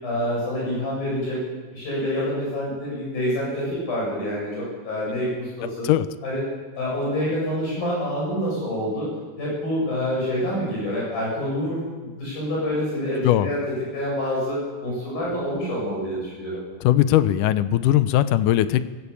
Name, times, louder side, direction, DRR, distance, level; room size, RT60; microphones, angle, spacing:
voice 1, 0.0-1.4 1.7-5.9 6.2-6.4 6.7-9.1 9.4-16.6, equal, 60° left, -5 dB, 9.5 m, -27 dB
voice 2, 16.8-18.8, left 13 dB, 85° left, 12 dB, 1.8 m, -19 dB
21.5 x 19.0 x 8.4 m, 1.4 s
omnidirectional pair, 4.7 m